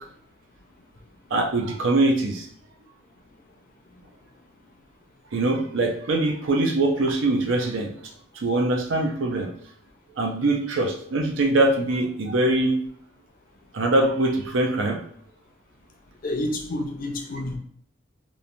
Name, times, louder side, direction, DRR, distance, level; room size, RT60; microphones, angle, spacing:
voice 1, 1.3-2.5 5.3-7.9 8.3-9.5 10.2-12.8 13.7-15.0, right 2 dB, 70° right, 3 dB, 0.5 m, -23 dB
voice 2, 16.2-17.6, left 1 dB, 45° left, 2 dB, 0.4 m, -29 dB
3.0 x 2.1 x 2.5 m, 0.62 s
head